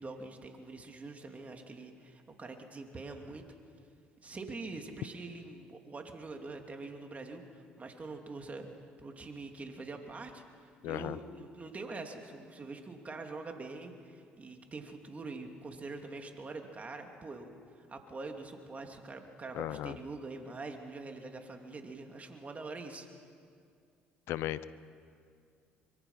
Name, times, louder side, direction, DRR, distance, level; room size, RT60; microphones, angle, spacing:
voice 1, 0.0-3.5 4.2-8.7 9.0-23.1, right 3 dB, 35° right, 4 dB, 3.0 m, -44 dB
voice 2, 10.8-11.2 19.5-20.0 24.3-24.6, left 14 dB, 70° left, 16 dB, 0.8 m, -35 dB
24.0 x 23.0 x 5.9 m, 2.3 s
hypercardioid pair, 65°, 4 cm